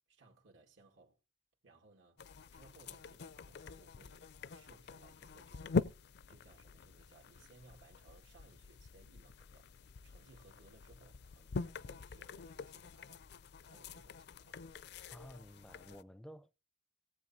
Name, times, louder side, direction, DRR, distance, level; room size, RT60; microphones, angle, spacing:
voice 1, 0.1-1.2 1.6-5.8 6.3-9.7 10.0-13.2 13.6-14.6, right 3 dB, 90° right, 2.0 m, -64 dB
sound 1, 2.2-16.0, left 4 dB, 60° left, 0.4 m, -44 dB
voice 2, 15.1-16.6, equal, 5° left, 0.4 m, -53 dB
18.0 x 8.1 x 2.7 m
head